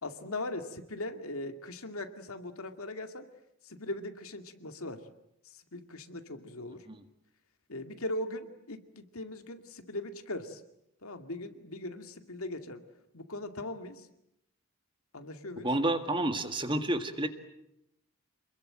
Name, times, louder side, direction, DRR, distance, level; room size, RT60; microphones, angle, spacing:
voice 1, 0.0-3.2 3.6-5.0 5.4-6.8 7.7-10.6 11.0-12.8 13.1-14.1 15.1-15.7, left 1 dB, 80° left, 7 dB, 2.3 m, -39 dB
voice 2, 15.6-17.3, right 1 dB, 20° right, 8 dB, 1.8 m, -30 dB
28.0 x 21.5 x 8.9 m, 0.81 s
head